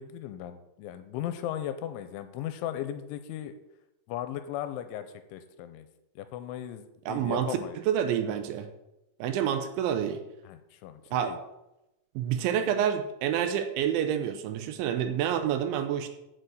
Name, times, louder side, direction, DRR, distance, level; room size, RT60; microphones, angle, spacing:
voice 1, 0.0-3.6 4.1-5.1 5.3-5.9 6.2-7.8 10.5-11.4, left 11 dB, 80° left, 10 dB, 2.9 m, -37 dB
voice 2, 7.1-7.6 7.9-8.7 9.2-10.2 11.1-11.3 12.2-16.1, right 9 dB, 80° right, 8 dB, 3.0 m, -28 dB
7.6 x 6.7 x 7.9 m, 0.92 s
omnidirectional pair, 5.7 m